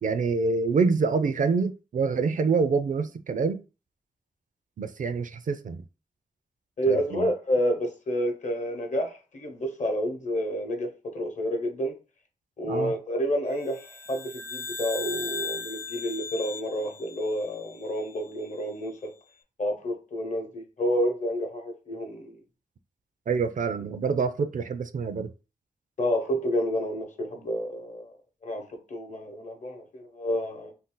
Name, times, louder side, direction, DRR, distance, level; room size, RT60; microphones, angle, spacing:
voice 1, 0.0-3.6 4.8-5.8 6.9-7.3 12.6-12.9 23.3-25.3, right 4 dB, 60° right, 0.4 m, -26 dB
voice 2, 6.8-11.9 12.6-19.1 19.6-22.4 26.0-28.1 28.4-30.7, equal, 55° left, 0.9 m, -29 dB
sound 1, 13.6-18.1, left 4 dB, 15° left, 0.4 m, -38 dB
2.6 x 2.1 x 3.7 m
cardioid pair, 45°, 15 cm